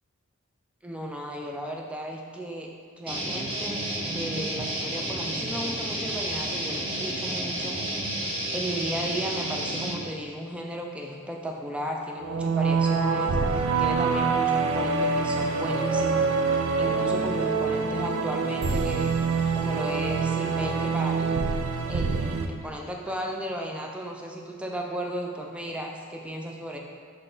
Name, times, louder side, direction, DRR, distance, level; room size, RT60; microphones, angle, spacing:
voice 1, 0.8-2.7 3.0-7.8 8.5-19.1 19.5-21.4 21.9-26.8, right 1 dB, 5° right, 0 dB, 0.4 m, -34 dB
sound 1, 3.1-9.9, right 1 dB, 25° right, 0.7 m, -31 dB
sound 2, 12.2-22.5, right 4 dB, 85° right, 0.4 m, -25 dB
3.9 x 3.3 x 3.8 m, 2.1 s
head